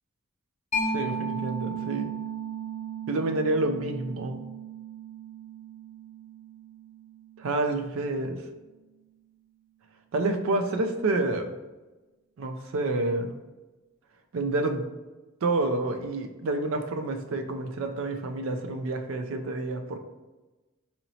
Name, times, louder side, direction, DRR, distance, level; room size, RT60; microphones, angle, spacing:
Mallet percussion, 0.7-8.0, right 3 dB, 30° left, 0.8 m, -35 dB
voice 1, 0.8-2.1 3.1-4.4 7.4-8.4 10.1-11.5 12.4-13.4 14.3-14.8 15.4-20.0, right 2 dB, 75° right, 6 dB, 0.4 m, -28 dB
4.3 x 2.9 x 2.7 m, 1.1 s
head